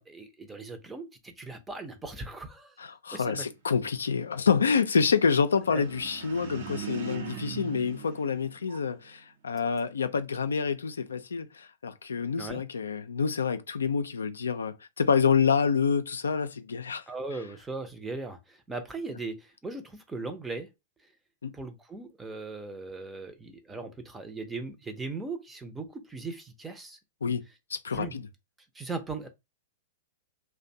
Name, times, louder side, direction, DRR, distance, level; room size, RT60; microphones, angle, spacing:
voice 1, 0.0-2.7 3.1-3.4 5.7-5.8 12.4-12.6 17.1-20.7 21.5-27.0 27.9-28.2 28.7-29.3, right 3 dB, 10° right, 0.5 m, -38 dB
voice 2, 2.8-17.0 21.4-21.5 27.2-27.4 27.7-28.3, left 6 dB, 85° left, 0.3 m, -27 dB
sound 1, 5.5-9.1, right 8 dB, 65° right, 0.7 m, -41 dB
2.5 x 2.1 x 2.6 m
hypercardioid pair, 110°, 0 cm